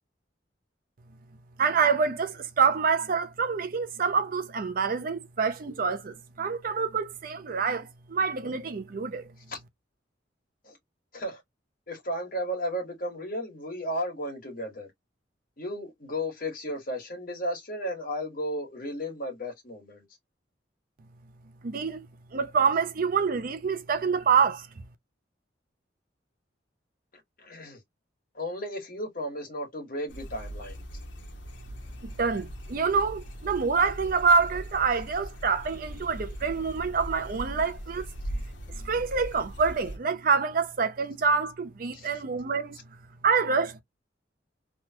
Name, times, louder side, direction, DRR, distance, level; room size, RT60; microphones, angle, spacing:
voice 1, 1.6-9.3 21.6-22.0 22.3-24.7 32.0-38.1 38.8-42.8 43.2-43.8, right 5 dB, 50° right, 0.5 m, -26 dB
voice 2, 11.9-14.9 15.6-20.0 27.4-27.8 28.3-30.8 41.9-42.2, equal, 50° left, 1.6 m, -34 dB
sound 1, 30.1-40.0, equal, 75° left, 0.9 m, -40 dB
3.2 x 2.2 x 2.8 m
head